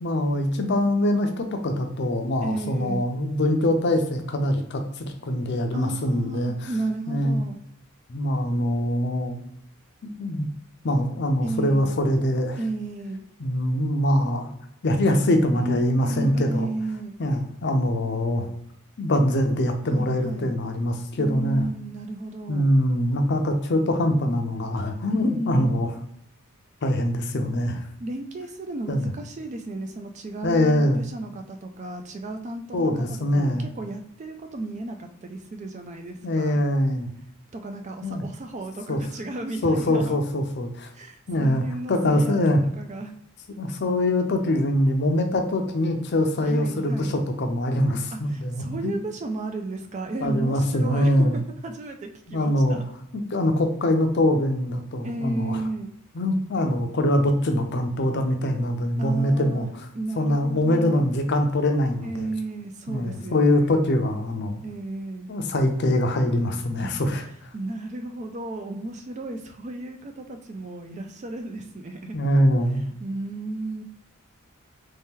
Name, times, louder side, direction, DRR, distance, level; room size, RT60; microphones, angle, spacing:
voice 1, 0.0-6.7 7.1-7.4 8.1-9.4 10.2-10.5 10.8-12.6 13.4-14.5 14.8-16.7 17.2-18.5 19.0-21.6 22.5-25.9 26.8-27.8 28.9-29.1 30.4-31.0 32.7-33.7 36.2-37.1 38.0-38.2 38.9-39.0 39.6-40.9 41.3-42.6 43.6-49.0 50.2-51.4 52.3-52.8 53.1-55.6 56.1-59.9 60.2-62.3 62.9-64.6 65.3-67.2 72.1-72.8, left 1 dB, 50° left, 5 dB, 0.5 m, -23 dB
voice 2, 2.4-3.1 5.7-7.6 11.4-11.9 12.6-13.2 15.5-17.1 19.8-20.6 21.1-22.7 25.1-25.8 28.0-36.6 37.5-40.2 40.9-42.4 42.8-43.1 46.4-47.2 48.1-52.8 55.0-55.9 59.0-59.7 59.9-61.2 62.0-63.8 64.6-65.3 66.8-66.9 67.5-72.2 72.7-73.8, right 2 dB, 30° right, 5 dB, 0.3 m, -33 dB
3.2 x 2.8 x 3.6 m, 0.74 s
head